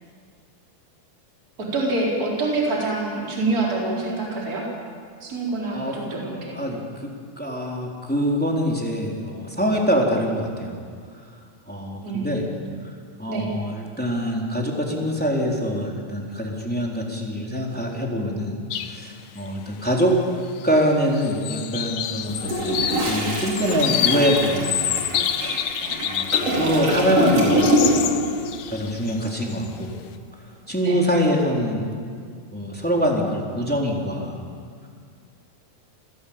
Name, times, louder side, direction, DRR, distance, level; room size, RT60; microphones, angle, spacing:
voice 1, 1.6-4.6 5.2-6.5 12.0-12.3 13.3-13.5 25.8-25.9 30.8-30.9, right 2 dB, 25° right, -3 dB, 4.7 m, -26 dB
voice 2, 6.5-10.7 11.7-12.5 13.2-18.6 18.9-20.2 20.6-25.0 25.4-25.7 26.0-27.9 28.7-29.9 30.7-31.9 32.5-34.4, equal, 5° left, -1 dB, 3.2 m, -24 dB
sound 1, 18.7-19.0 19.4-19.5 20.4-20.8 21.1-26.6 27.0-29.7, left 11 dB, 70° left, 1.9 m, -28 dB
Toilet flush, 22.3-28.3 28.5-28.8, right 1 dB, 45° right, 5.2 m, -24 dB
28.0 x 18.5 x 8.8 m, 2.1 s
omnidirectional pair, 4.0 m